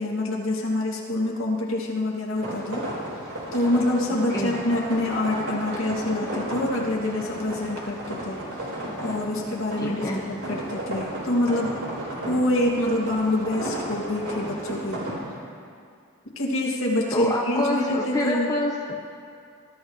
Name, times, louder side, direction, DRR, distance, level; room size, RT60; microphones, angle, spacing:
voice 1, 0.0-2.9 3.5-8.4 9.0-11.7 12.3-15.0 16.4-18.5, left 1 dB, 65° left, -3 dB, 2.4 m, -26 dB
sound 1, 2.3-15.1, right 1 dB, 85° right, 4.6 m, -34 dB
voice 2, 9.8-10.2 17.1-19.0, left 1 dB, 15° left, -3 dB, 1.0 m, -27 dB
22.0 x 13.5 x 3.2 m, 2.3 s
head